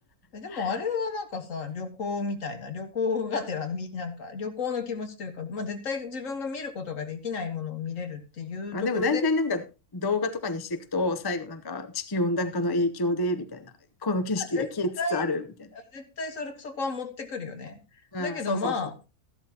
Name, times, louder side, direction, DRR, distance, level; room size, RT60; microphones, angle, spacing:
voice 1, 0.3-9.2 14.4-14.7 15.0-15.2 15.7-17.8 18.2-18.9, left 4 dB, 60° left, 1.7 m, -32 dB
voice 2, 8.7-9.6 9.9-13.7 14.0-15.7 18.1-18.7, left 2 dB, 20° left, 0.6 m, -28 dB
14.0 x 12.0 x 2.9 m
omnidirectional pair, 1.6 m